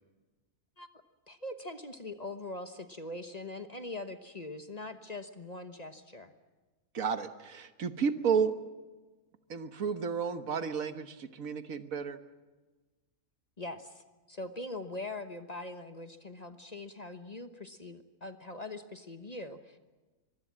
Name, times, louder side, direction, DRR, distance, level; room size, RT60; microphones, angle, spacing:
voice 1, 1.3-6.3 13.6-19.8, left 2 dB, 30° left, 8 dB, 1.2 m, -42 dB
voice 2, 6.9-8.5 9.5-12.2, right 6 dB, 70° right, 10 dB, 1.6 m, -32 dB
24.0 x 22.5 x 7.5 m, 1.3 s
omnidirectional pair, 1.5 m